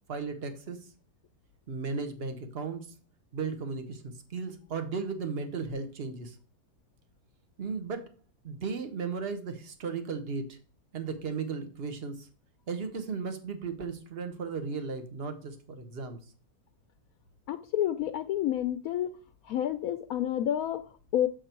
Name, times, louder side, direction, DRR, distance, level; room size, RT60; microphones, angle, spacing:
voice 1, 0.1-0.8 1.7-2.9 3.3-6.4 7.6-8.1 8.4-10.6 10.9-12.3 12.7-16.2, right 5 dB, 40° right, 8 dB, 1.3 m, -35 dB
voice 2, 17.5-19.2 19.4-21.3, left 11 dB, 70° left, 10 dB, 0.9 m, -29 dB
7.4 x 6.4 x 4.5 m, 0.36 s
omnidirectional pair, 1.7 m